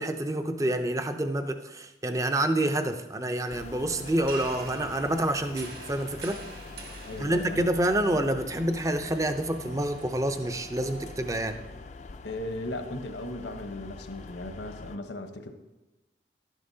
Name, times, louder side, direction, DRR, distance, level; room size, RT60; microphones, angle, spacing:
voice 1, 0.0-6.4 7.2-11.6, right 1 dB, 20° right, 7 dB, 0.5 m, -28 dB
sound 1, 3.5-15.0, left 3 dB, 40° left, 0.4 m, -44 dB
sound 2, 4.0-11.5, right 4 dB, 55° right, 1.6 m, -46 dB
voice 2, 7.0-7.7 12.2-15.5, left 1 dB, 80° left, 6 dB, 1.0 m, -37 dB
11.5 x 10.5 x 2.7 m, 1.1 s
head